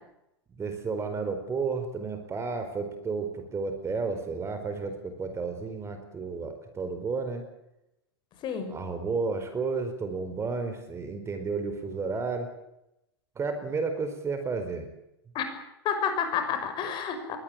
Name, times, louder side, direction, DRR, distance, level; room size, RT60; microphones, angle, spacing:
voice 1, 0.5-7.4 8.6-12.5 13.3-14.9, right 4 dB, 20° right, 8 dB, 4.7 m, -32 dB
voice 2, 8.4-8.7 15.3-15.5 15.8-17.4, left 7 dB, 35° left, 7 dB, 5.9 m, -29 dB
22.5 x 18.5 x 8.9 m, 0.87 s
hypercardioid pair, 100°, 13 cm